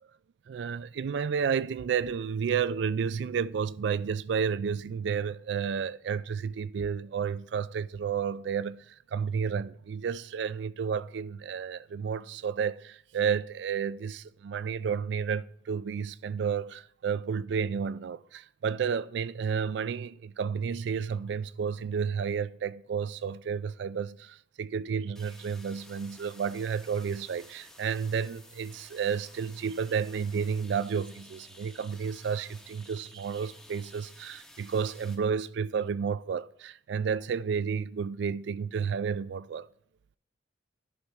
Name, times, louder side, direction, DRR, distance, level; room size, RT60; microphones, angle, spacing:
voice 1, 0.5-39.7, right 6 dB, 60° right, 0.3 m, -31 dB
sound 1, 25.2-35.2, left 1 dB, 5° left, 0.9 m, -53 dB
11.0 x 5.7 x 3.5 m
head